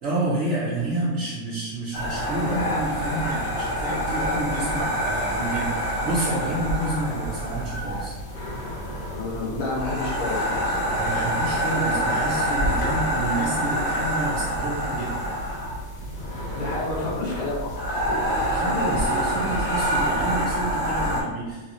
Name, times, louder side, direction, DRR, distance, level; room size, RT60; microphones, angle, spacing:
voice 1, 0.0-8.2 11.0-15.4 18.5-21.7, right 2 dB, 60° right, -8 dB, 0.9 m, -29 dB
sound 1, 1.9-21.2, equal, 70° left, 1.3 m, -26 dB
voice 2, 3.0-3.4 9.1-11.0 16.5-18.2 18.5-19.2, left 2 dB, 85° left, -5 dB, 1.5 m, -31 dB
3.4 x 2.9 x 2.5 m, 1.3 s
omnidirectional pair, 1.5 m